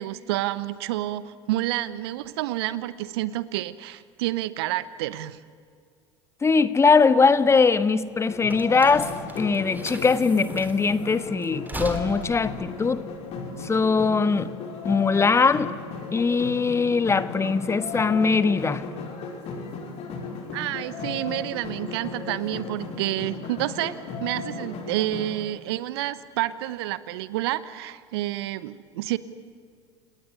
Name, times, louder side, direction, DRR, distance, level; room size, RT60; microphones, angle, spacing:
voice 1, 0.0-5.4 20.5-29.2, right 15 dB, 60° right, 16 dB, 1.1 m, -29 dB
voice 2, 6.4-9.1 9.4-13.0 13.6-14.5 14.8-15.7 16.1-18.8, left 4 dB, 20° left, 13 dB, 1.3 m, -21 dB
sound 1, 7.2-14.0, right 2 dB, 10° right, 3.5 m, -40 dB
sound 2, 8.3-25.3, left 4 dB, 45° left, 5.5 m, -36 dB
30.0 x 19.0 x 9.9 m, 2.1 s
figure-of-eight pair, 75°, 15 cm